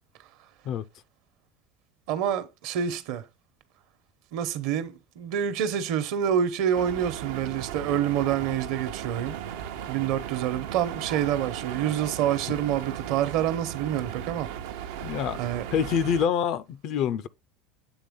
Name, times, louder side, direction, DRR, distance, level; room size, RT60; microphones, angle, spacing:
voice 1, 2.1-3.2 4.3-9.3 9.9-14.5 14.9-15.1 15.4-15.6, right 9 dB, 70° right, 1.0 m, -27 dB
sound 1, 6.7-16.3, right 9 dB, 85° right, 0.7 m, -36 dB
voice 2, 15.0-15.4 15.7-17.3, left 8 dB, 55° left, 0.5 m, -26 dB
8.0 x 3.5 x 3.7 m
supercardioid pair, 120°, 0 cm